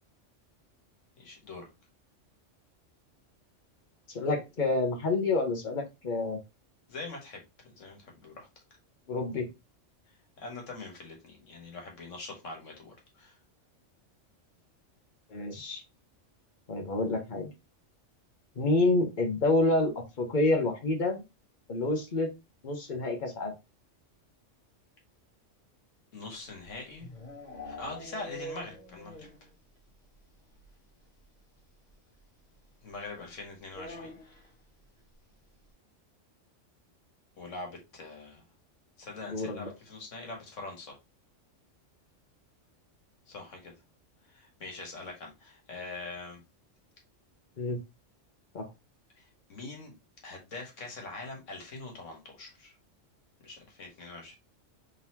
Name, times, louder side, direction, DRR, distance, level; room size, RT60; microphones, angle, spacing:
voice 1, 1.2-1.7 6.9-8.5 10.4-13.4 26.1-27.1 27.6-29.5 32.8-34.1 37.4-38.4 39.0-41.0 43.3-43.7 44.3-46.4 49.2-49.9 50.2-52.7 53.4-54.4, left 3 dB, 80° left, 1.7 m, -43 dB
voice 2, 4.1-6.4 9.1-9.5 15.3-15.8 16.7-17.5 18.6-19.9 20.2-21.2 21.7-22.3 22.6-23.5 39.3-39.7 47.6-47.8 48.5-48.7, left 2 dB, 40° left, 1.1 m, -28 dB
sound 1, 26.4-29.5 29.8-29.9 30.2-30.3 30.5-30.6 31.9-32.0 33.7-34.5, left 1 dB, 55° left, 1.9 m, -44 dB
4.0 x 3.5 x 2.8 m
omnidirectional pair, 1.3 m